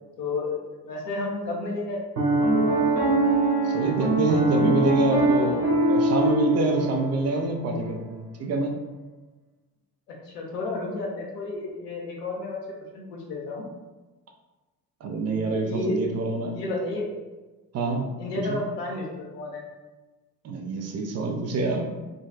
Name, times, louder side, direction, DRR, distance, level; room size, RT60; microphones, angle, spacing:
voice 1, 0.2-2.0 2.4-2.8 10.1-12.6 12.9-13.7 15.6-16.0 16.5-17.1 18.2-19.6, left 2 dB, 80° left, -1 dB, 0.7 m, -31 dB
Piano, 2.2-7.5, right 2 dB, 90° right, 0.6 m, -23 dB
voice 2, 3.6-8.7 15.0-16.6 17.7-18.1 18.3-18.6 20.4-21.9, right 3 dB, 35° right, 3 dB, 0.4 m, -26 dB
3.8 x 2.3 x 2.3 m, 1.2 s
figure-of-eight pair, 45°, 48 cm